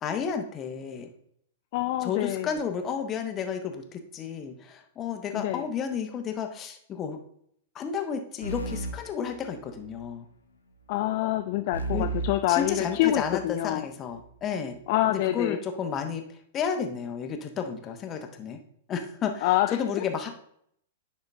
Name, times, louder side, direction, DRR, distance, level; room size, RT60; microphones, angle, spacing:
voice 1, 0.0-1.1 2.0-7.2 7.7-10.3 11.9-12.1 12.5-14.7 15.1-18.6 18.9-20.3, left 7 dB, 25° left, 6 dB, 1.1 m, -32 dB
voice 2, 1.7-2.5 5.3-5.6 10.9-13.8 14.9-15.6 19.4-19.8, left 14 dB, 45° left, 8 dB, 0.4 m, -26 dB
sound 1, 8.4-10.0 11.7-13.5, right 3 dB, 75° left, 1.0 m, -35 dB
10.5 x 4.4 x 3.5 m, 0.68 s
figure-of-eight pair, 100°, 0 cm